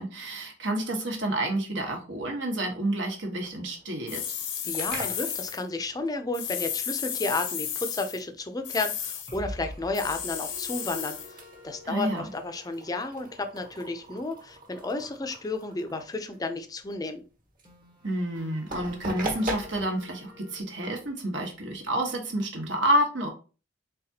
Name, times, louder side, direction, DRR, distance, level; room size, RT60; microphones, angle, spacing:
voice 1, 0.0-4.2 11.8-12.3 18.0-23.3, right 1 dB, 75° right, 2 dB, 1.2 m, -29 dB
sound 1, 3.4-4.6 4.9-5.0 5.3-5.4 9.3-14.9 17.7-20.6, left 1 dB, 25° right, 0.8 m, -47 dB
sound 2, 4.1-5.6 6.3-8.2 8.6-9.4 9.9-11.3, left 8 dB, 80° left, 0.7 m, -33 dB
voice 2, 4.6-17.2, left 3 dB, 20° left, 7 dB, 0.5 m, -32 dB
sound 3, 4.6-22.3, right 1 dB, 45° right, 1.3 m, -43 dB
4.0 x 3.6 x 2.8 m, 0.35 s
head